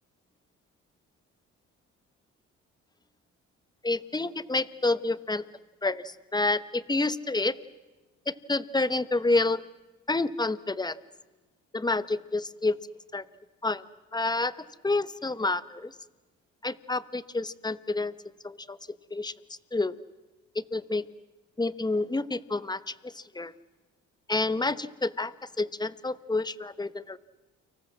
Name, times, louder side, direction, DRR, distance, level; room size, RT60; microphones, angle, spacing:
voice 1, 3.8-5.4 5.8-7.6 8.3-9.6 10.1-11.0 11.7-12.8 13.1-13.2 13.6-13.8 14.1-15.9 16.6-18.1 18.4-18.8 19.1-19.3 19.7-20.0 20.5-21.1 21.6-23.5 24.3-27.2, left 2 dB, 15° left, 16 dB, 1.2 m, -29 dB
30.0 x 25.0 x 7.5 m, 1.2 s
cardioid pair, 90°, 30 cm